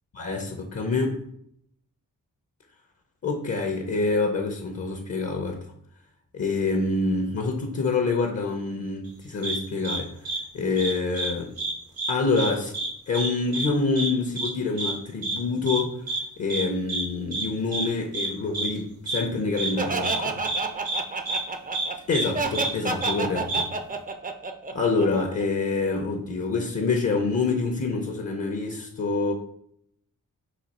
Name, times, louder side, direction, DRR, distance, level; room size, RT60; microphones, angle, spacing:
voice 1, 0.1-1.2 3.2-5.6 6.3-10.1 10.5-11.5 12.1-12.7 13.1-16.0 16.4-20.4 22.1-23.7 24.7-29.3, left 3 dB, 50° left, 3 dB, 0.7 m, -26 dB
sound 1, 9.4-9.6 9.8-10.0 10.2-10.4 10.8-11.3 11.6-11.7 12.0-12.5 12.7-12.9 13.1-13.3 13.5-13.7 14.0-14.1 14.4-14.5 14.8-14.9 15.2-15.3 15.7-15.8 16.1-16.2 16.5-16.6 16.9-17.0 17.3-17.4 17.7-17.8 18.1-18.3 18.5-18.7 19.1-19.2 19.6-19.7 20.0-20.2 20.4-20.6 20.8-21.0 21.3-21.4 21.7-21.8 22.1-22.2 22.5-22.7 23.0-23.1 23.5-23.6, right 3 dB, 80° right, 1.5 m, -28 dB
Laughter, 19.8-25.4, right 4 dB, 25° right, 0.5 m, -29 dB
4.1 x 2.7 x 4.1 m, 0.72 s
cardioid pair, 75°, 34 cm